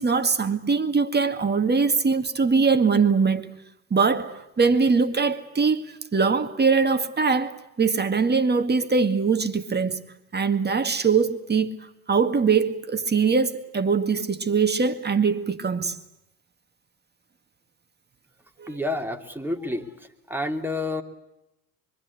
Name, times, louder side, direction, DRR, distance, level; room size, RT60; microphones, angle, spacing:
voice 1, 0.0-3.5 3.9-10.0 10.3-11.7 12.1-16.0 18.6-18.7, right 5 dB, 25° right, 2.0 m, -22 dB
voice 2, 18.7-21.0, left 2 dB, 5° right, 2.9 m, -29 dB
25.5 x 24.0 x 8.5 m
hypercardioid pair, 65°, 44 cm